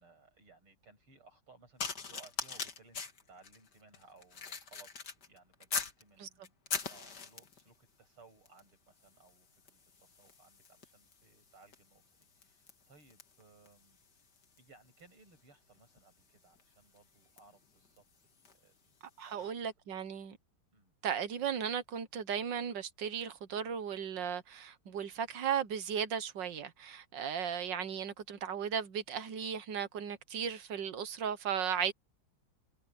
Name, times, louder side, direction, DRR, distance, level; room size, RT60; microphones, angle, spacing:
voice 1, 0.0-3.0 3.3-6.6 6.9-19.0 19.2-20.0 20.7-20.9, right 3 dB, 85° right, 8.7 m, -62 dB
sound 1, 1.8-6.0 6.4-7.7 8.5-8.7 9.0-18.7 19.4-19.5, left 5 dB, 50° left, 2.5 m, -43 dB
voice 2, 19.2-20.4 21.0-31.9, right 8 dB, 65° right, 1.7 m, -36 dB
omnidirectional pair, 2.3 m